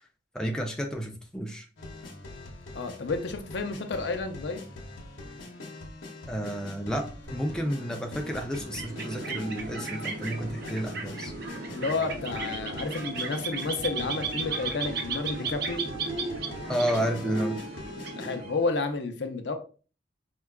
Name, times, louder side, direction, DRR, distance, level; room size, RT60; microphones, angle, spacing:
voice 1, 0.3-1.7 6.3-11.3 16.7-17.6, equal, 5° left, 1 dB, 0.3 m, -31 dB
sound 1, 1.8-18.4, left 2 dB, 80° left, 0.9 m, -43 dB
voice 2, 2.7-4.6 11.7-15.8 18.2-19.5, left 3 dB, 65° left, 7 dB, 0.5 m, -31 dB
sound 2, 7.2-18.6, equal, 80° right, 1.3 m, -48 dB
sound 3, 8.4-18.8, right 4 dB, 55° right, 0.6 m, -35 dB
4.5 x 2.3 x 2.2 m, 0.37 s
head